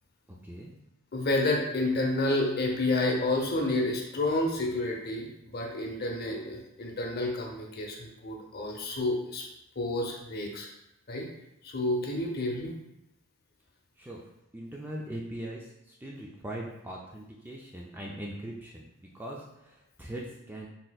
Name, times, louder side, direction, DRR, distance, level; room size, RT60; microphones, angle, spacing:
voice 1, 0.4-0.8 14.0-14.2 14.5-20.7, right 1 dB, 10° right, -2 dB, 0.3 m, -41 dB
voice 2, 1.1-5.3 5.5-9.4 9.8-10.7 11.1-11.3 11.6-12.8, left 2 dB, 45° left, 1 dB, 0.7 m, -29 dB
4.1 x 3.7 x 2.3 m, 0.85 s
head